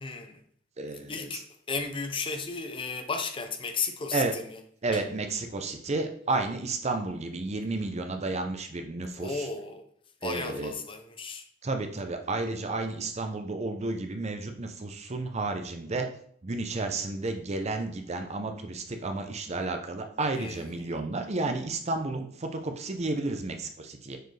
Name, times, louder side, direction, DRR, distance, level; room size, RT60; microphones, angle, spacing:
voice 1, 0.0-0.4 1.1-4.6 4.9-5.0 9.2-9.8 10.2-11.4 20.4-21.0, left 4 dB, 30° left, 0.6 m, -34 dB
voice 2, 0.8-1.4 4.1-4.3 4.8-9.5 10.2-10.7 11.6-16.1 16.4-24.2, right 3 dB, 35° right, 0.6 m, -32 dB
6.5 x 4.5 x 3.3 m
head